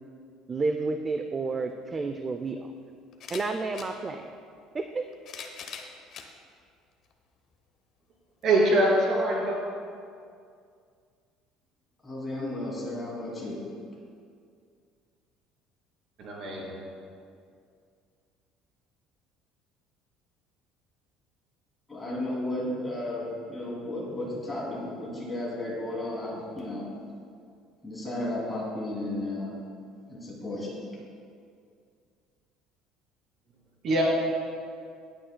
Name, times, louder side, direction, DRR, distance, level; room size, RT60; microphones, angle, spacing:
voice 1, 0.5-2.7 3.3-4.3 4.7-5.1, right 3 dB, 20° right, 6 dB, 0.3 m, -30 dB
sound 1, 1.7-1.8 3.1-3.9 4.9-6.3 7.0-7.1 8.4-8.5, left 6 dB, 40° left, 0.8 m, -42 dB
voice 2, 8.4-9.6 16.2-16.8 33.8-34.0, right 1 dB, 40° right, -3 dB, 2.6 m, -24 dB
voice 3, 12.0-13.6 21.9-26.9 27.8-29.6 30.1-30.8, left 1 dB, 10° left, -6 dB, 2.7 m, -33 dB
18.0 x 8.7 x 2.2 m, 2.3 s
cardioid pair, 165°, 0 cm